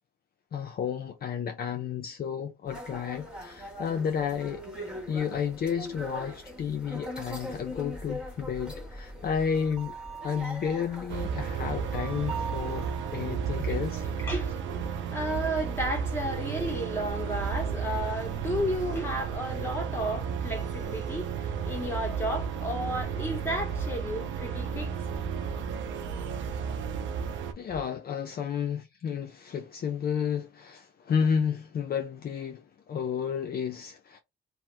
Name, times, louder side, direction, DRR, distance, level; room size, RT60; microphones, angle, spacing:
voice 1, 0.5-4.6 5.1-10.0 10.2-14.0 27.6-34.2, left 7 dB, 50° left, 0.5 m, -31 dB
sound 1, 2.7-14.2, equal, 5° right, 1.4 m, -41 dB
sound 2, 11.1-27.5, right 7 dB, 75° right, 0.6 m, -33 dB
voice 2, 14.2-24.9 26.2-26.5, equal, 10° left, 1.4 m, -33 dB
2.8 x 2.1 x 3.4 m
cardioid pair, 90°, 20 cm